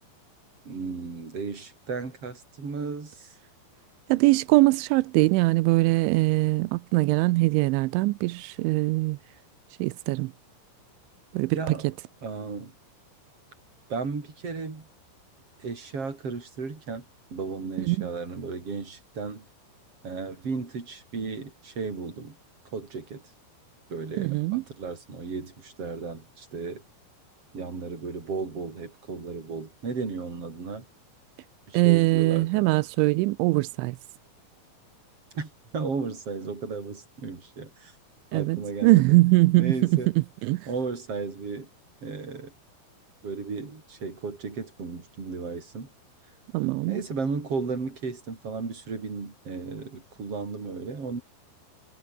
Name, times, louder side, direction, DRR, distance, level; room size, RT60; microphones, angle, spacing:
voice 1, 0.7-3.3 11.5-11.9 12.2-12.7 13.9-14.9 15.6-17.1 17.3-19.5 20.0-22.4 22.7-23.2 23.9-26.8 27.5-30.9 31.7-32.7 35.3-37.9 38.3-39.1 39.6-40.1 40.7-41.7 42.0-42.5 43.2-45.9 46.9-51.2, right 4 dB, 30° right, 5.8 m, -34 dB
voice 2, 4.1-9.2 9.8-10.3 11.3-11.6 17.8-18.1 24.2-24.6 31.7-34.0 38.3-40.7 46.5-47.0, right 21 dB, 90° right, 3.1 m, -22 dB
omnidirectional pair, 5.3 m